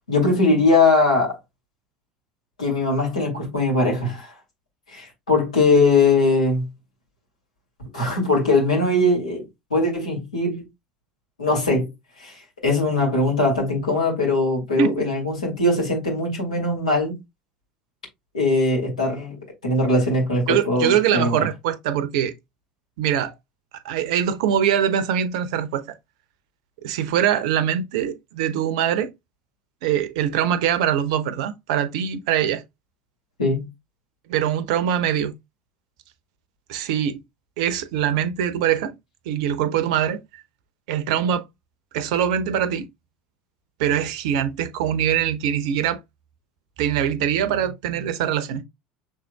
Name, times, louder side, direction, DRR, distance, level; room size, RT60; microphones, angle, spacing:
voice 1, 0.1-1.4 2.6-4.3 4.9-6.6 7.9-9.4 9.7-10.7 11.4-11.9 12.2-12.3 12.6-17.1 18.3-19.4 19.6-21.4 33.4-33.7, left 2 dB, 80° left, 2.5 m, -20 dB
voice 2, 20.5-22.3 23.0-23.3 23.8-26.0 26.8-29.1 29.8-32.6 34.3-35.3 36.7-37.2 37.6-38.9 39.3-40.4 40.9-41.4 41.9-42.9 43.8-46.0 46.8-48.6, right 9 dB, 60° right, 0.6 m, -23 dB
6.0 x 3.6 x 2.2 m
figure-of-eight pair, 70°, 4 cm